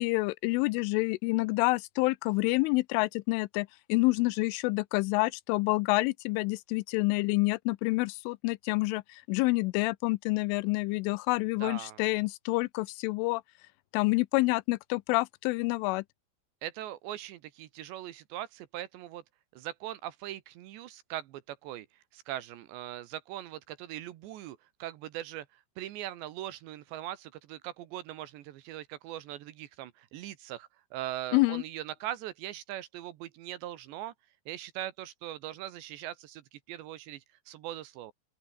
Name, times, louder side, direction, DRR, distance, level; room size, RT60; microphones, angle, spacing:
voice 1, 0.0-13.4 13.9-16.0 31.3-31.6, left 23 dB, 85° left, 3.0 m, -28 dB
voice 2, 11.6-12.0 16.6-19.2 19.5-34.1 34.5-38.1, right 13 dB, 70° right, 3.1 m, -41 dB
open air
omnidirectional pair, 5.7 m